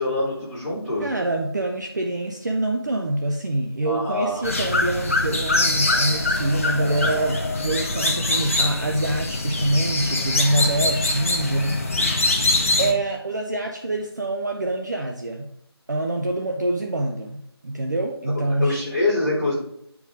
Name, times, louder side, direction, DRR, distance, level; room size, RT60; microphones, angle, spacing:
voice 1, 0.0-1.1 3.8-4.5 18.6-19.5, left 2 dB, 5° right, -15 dB, 2.3 m, -24 dB
voice 2, 1.0-11.8 12.8-15.5 15.9-18.8, right 1 dB, 45° right, 2 dB, 0.6 m, -25 dB
sound 1, 4.4-12.9, left 2 dB, 30° left, 0.8 m, -23 dB
9.6 x 4.6 x 3.7 m, 0.72 s
figure-of-eight pair, 170°, 14 cm